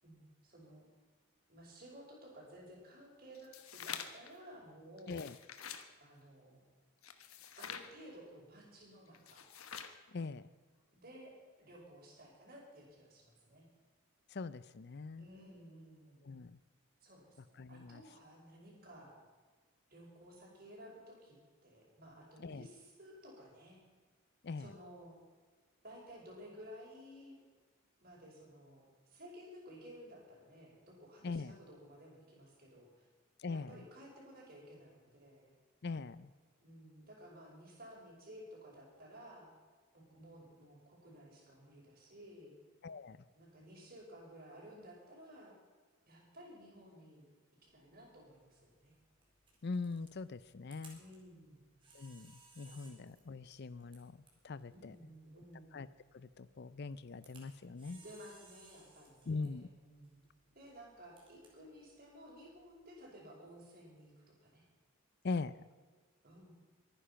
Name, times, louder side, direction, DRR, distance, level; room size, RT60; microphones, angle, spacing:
voice 1, 0.0-0.8 1.5-5.2 6.0-6.6 7.6-9.5 10.9-11.3 11.6-13.7 15.2-16.4 17.0-19.2 19.9-21.4 21.6-23.8 24.6-25.2 25.8-27.4 28.0-33.1 33.5-35.5 36.6-39.5 39.9-42.5 43.4-45.5 46.1-47.3 47.7-48.9 51.0-51.7 52.8-52.9 54.7-55.7 57.9-60.2 60.6-64.7 66.2-66.5, equal, 45° right, -2 dB, 5.5 m, -55 dB
sound 1, 3.3-4.3 5.0-5.9 7.0-7.9 9.1-10.0, left 8 dB, 80° left, 1.3 m, -47 dB
voice 2, 10.1-10.5 14.3-15.3 16.2-16.6 17.6-18.0 22.4-22.7 24.4-24.7 31.2-31.5 33.4-33.8 35.8-36.3 42.8-43.2 49.6-51.0 51.9-54.2 54.4-54.9 55.7-55.9 56.1-58.0 59.3-59.7 65.2-65.7, left 4 dB, 50° left, 16 dB, 0.5 m, -42 dB
Camera, 47.6-63.1, right 3 dB, 25° right, 3.8 m, -65 dB
23.0 x 10.0 x 5.8 m, 1.5 s
head